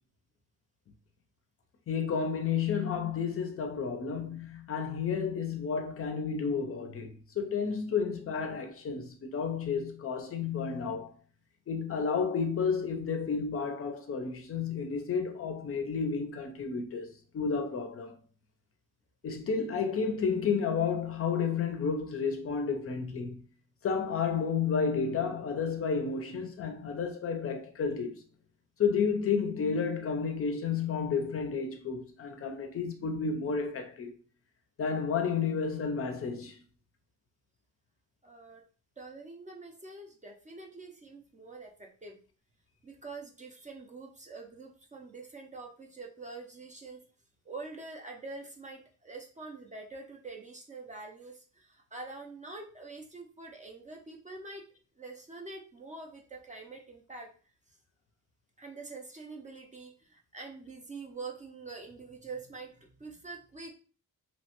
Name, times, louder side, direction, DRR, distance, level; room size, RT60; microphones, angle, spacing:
voice 1, 1.9-11.1 11.7-18.2 19.2-23.4 23.8-28.2 28.8-34.1 34.8-36.6, left 5 dB, 45° left, 0.4 m, -31 dB
voice 2, 38.2-38.6 39.0-42.2 42.8-47.0 47.5-54.6 55.0-57.3 58.6-63.7, right 3 dB, 25° right, 0.4 m, -45 dB
2.9 x 2.1 x 2.8 m
wide cardioid pair, 150°, 32 cm